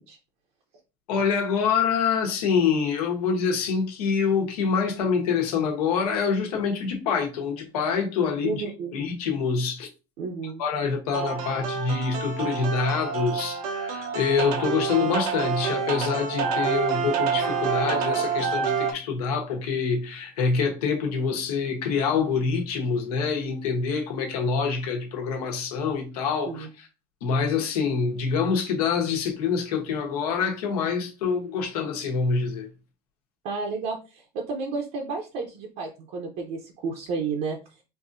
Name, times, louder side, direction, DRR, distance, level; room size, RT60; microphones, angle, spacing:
voice 1, 1.1-8.6 8.9-9.9 10.6-26.7 27.2-32.7, left 5 dB, 90° left, 1.3 m, -26 dB
voice 2, 8.4-8.9 10.2-10.6 26.5-26.7 33.4-37.6, right 4 dB, 55° right, 0.8 m, -31 dB
sound 1, 11.1-18.9, right 6 dB, 85° right, 0.9 m, -27 dB
4.6 x 2.7 x 2.6 m
supercardioid pair, 145°, 19 cm